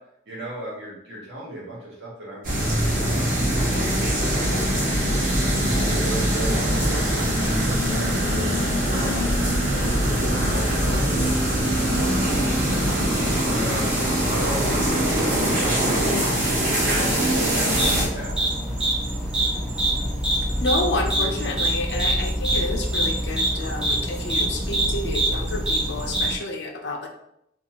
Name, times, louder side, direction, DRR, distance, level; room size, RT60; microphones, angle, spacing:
voice 1, 0.3-12.9 13.5-16.2 16.5-18.5, right 1 dB, 75° right, -5 dB, 1.2 m, -38 dB
sound 1, 2.4-18.1, right 1 dB, 50° right, 0.8 m, -22 dB
sound 2, 17.7-26.4, right 1 dB, 5° right, 0.6 m, -25 dB
voice 2, 20.6-27.1, left 2 dB, 70° left, 3 dB, 0.4 m, -29 dB
2.6 x 2.4 x 2.8 m, 0.76 s
head